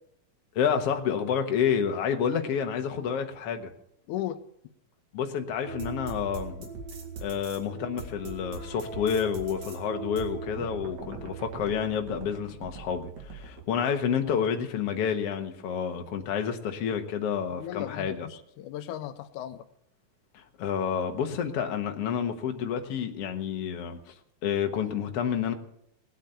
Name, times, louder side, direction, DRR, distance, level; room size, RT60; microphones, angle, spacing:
voice 1, 0.6-3.7 5.1-6.7 7.2-18.3 20.3-24.1 24.4-25.5, left 7 dB, 60° left, 5 dB, 2.1 m, -29 dB
voice 2, 4.1-4.4 17.6-19.6, left 12 dB, 90° left, 11 dB, 2.2 m, -36 dB
sound 1, 5.7-13.6, right 4 dB, 60° right, 3.3 m, -40 dB
19.5 x 8.3 x 6.8 m, 0.74 s
omnidirectional pair, 3.4 m